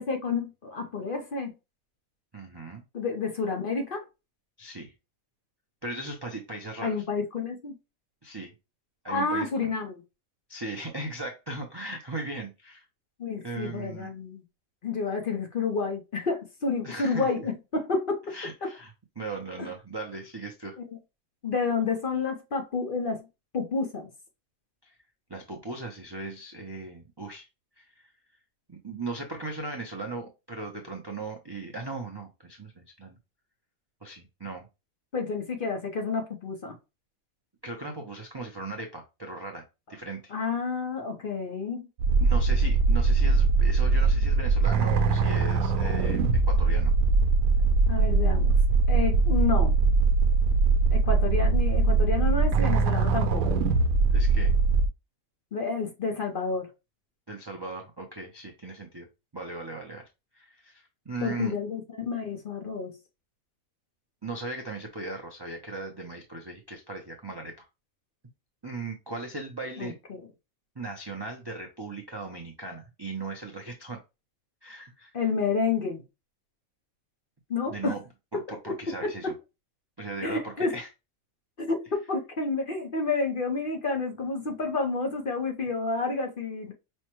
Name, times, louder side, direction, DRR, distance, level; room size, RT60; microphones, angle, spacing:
voice 1, 0.0-1.5 2.9-4.0 6.8-7.8 9.1-10.0 13.2-14.4 14.8-18.3 18.6-18.7 19.6-19.7 20.8-20.9 21.4-23.2 23.5-24.1 35.1-36.7 40.3-41.9 47.9-48.5 48.9-49.8 50.9-53.6 55.5-56.7 61.2-62.9 69.8-70.2 75.1-76.0 77.5-78.0 78.5-78.8 79.0-79.3 80.2-80.7 81.6-86.7, left 4 dB, 45° left, 0.9 m, -30 dB
voice 2, 2.3-2.8 4.6-4.9 5.8-7.0 8.2-8.5 9.0-9.7 10.5-12.9 13.4-14.1 16.8-17.5 18.3-20.8 24.8-24.9 25.3-27.5 27.8-28.1 28.7-33.2 34.0-34.7 37.6-39.6 39.9-40.3 42.2-46.9 54.1-54.5 57.3-59.1 59.3-60.0 60.3-61.5 64.2-67.7 68.6-70.0 70.8-74.0 74.6-75.1 77.7-78.0 78.3-79.3 80.0-80.9, right 3 dB, 35° right, 0.4 m, -38 dB
sound 1, 42.0-54.9, right 4 dB, 85° right, 1.0 m, -22 dB
5.4 x 2.1 x 3.0 m
omnidirectional pair, 1.5 m